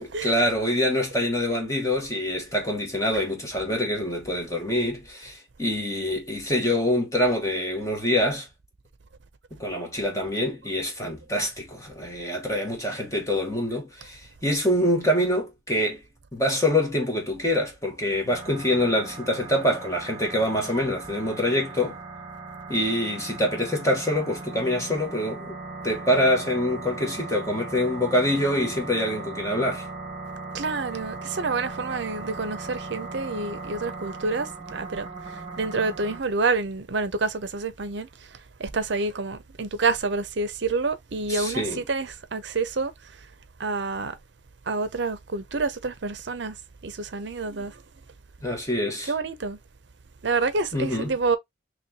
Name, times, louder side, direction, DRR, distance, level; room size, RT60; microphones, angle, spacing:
voice 1, 0.2-8.5 9.5-16.0 16.3-22.0 22.7-25.6 25.8-29.9 41.3-41.8 48.4-49.1 50.7-51.2, left 1 dB, 15° left, 1.2 m, -25 dB
sound 1, 18.3-36.2, right 3 dB, 30° right, 1.0 m, -38 dB
voice 2, 30.5-42.9 43.6-44.2 44.7-46.6 46.8-47.8 49.1-49.6 50.2-51.4, right 3 dB, 60° right, 0.6 m, -28 dB
4.3 x 3.1 x 2.7 m
head